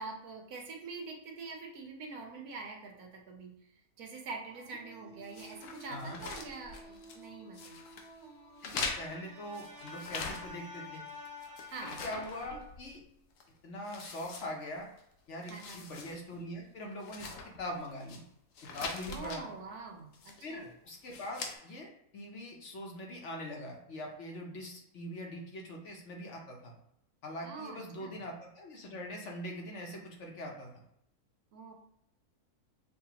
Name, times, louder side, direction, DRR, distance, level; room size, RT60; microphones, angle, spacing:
voice 1, 0.0-3.5 4.0-7.8 11.7-12.1 12.5-12.6 15.5-15.8 19.1-20.7 27.4-28.1 31.5-31.7, right 4 dB, 80° right, 1 dB, 1.3 m, -45 dB
sound 1, 4.5-12.6, left 2 dB, 45° right, 1.4 m, -50 dB
sound 2, 5.3-7.3 7.5-8.1 8.6-10.8 11.1-13.0 13.4-13.5 13.8-15.0 15.3-16.2 16.5-16.6 17.0-18.2 18.5-19.4 20.1-20.6 21.0-21.5, left 4 dB, 90° left, 1.2 m, -43 dB
voice 2, 5.9-6.2 8.6-11.0 11.8-13.0 13.6-14.9 15.3-17.3 17.6-18.2 18.7-19.5 20.4-26.7 27.2-30.7, left 1 dB, 60° left, 0 dB, 1.0 m, -42 dB
6.5 x 2.3 x 2.9 m, 0.75 s
omnidirectional pair, 1.6 m